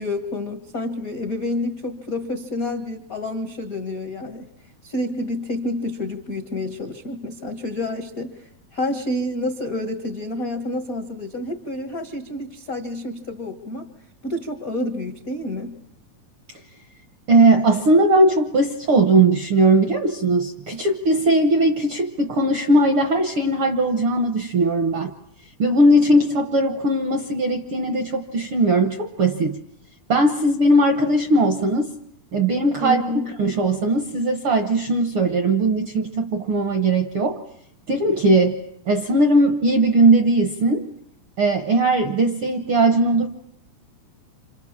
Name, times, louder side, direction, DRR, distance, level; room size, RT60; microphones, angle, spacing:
voice 1, 0.0-4.5 4.8-13.9 14.2-15.8 32.8-33.3, left 1 dB, 65° left, 6 dB, 0.8 m, -29 dB
voice 2, 17.3-25.1 25.6-29.6 30.1-31.9 32.3-33.0 33.4-37.4 37.9-38.6 38.9-40.9 41.4-43.3, right 2 dB, 70° right, 7 dB, 1.3 m, -19 dB
27.5 x 27.0 x 7.3 m, 0.75 s
omnidirectional pair, 4.1 m